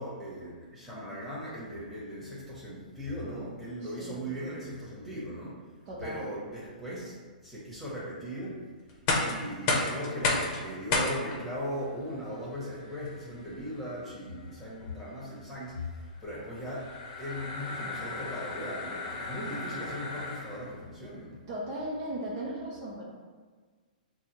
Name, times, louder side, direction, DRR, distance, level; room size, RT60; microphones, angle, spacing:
voice 1, 0.0-5.6 6.0-7.1 7.4-8.6 9.2-21.4, equal, 5° left, -8 dB, 1.4 m, -38 dB
voice 2, 3.8-4.2 5.9-6.3 21.5-23.0, right 1 dB, 35° right, -5 dB, 0.9 m, -37 dB
sound 1, 8.9-20.8, left 3 dB, 40° left, 0.8 m, -34 dB
6.1 x 2.3 x 2.9 m, 1.5 s
hypercardioid pair, 140°, 5 cm